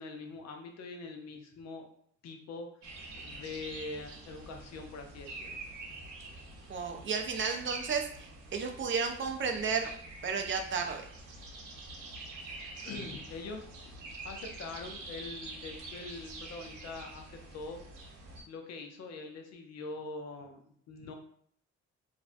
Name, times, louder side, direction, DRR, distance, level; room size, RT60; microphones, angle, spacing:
voice 1, 0.0-1.9 2.2-5.6 12.8-13.7 14.2-17.8 18.5-21.1, left 3 dB, 60° left, 4 dB, 0.5 m, -43 dB
sound 1, 2.8-18.4, right 2 dB, 80° right, 0.7 m, -46 dB
voice 2, 6.7-9.9 10.2-11.0, right 5 dB, 40° right, 4 dB, 0.4 m, -33 dB
2.5 x 2.1 x 2.5 m, 0.64 s
cardioid pair, 90°, 30 cm